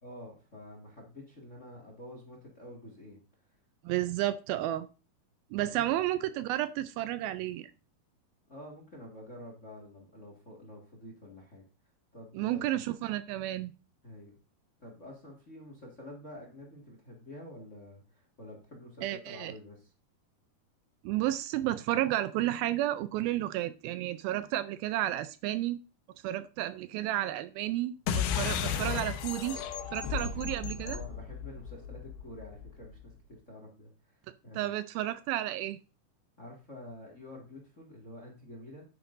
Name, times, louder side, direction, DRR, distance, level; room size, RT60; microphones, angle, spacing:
voice 1, 0.0-3.2 3.9-4.1 5.6-5.9 8.5-11.6 12.1-12.7 14.0-14.4 14.8-19.9 30.1-30.4 30.8-34.7 36.4-38.8, left 1 dB, 30° left, 1.4 m, -48 dB
voice 2, 3.8-4.9 5.5-7.7 12.3-13.7 19.0-19.5 21.0-25.8 26.2-29.6 29.9-31.0 34.6-35.8, right 14 dB, 80° right, 2.3 m, -32 dB
sound 1, 28.1-33.0, left 8 dB, 85° left, 3.0 m, -34 dB
10.5 x 9.2 x 2.6 m
omnidirectional pair, 4.4 m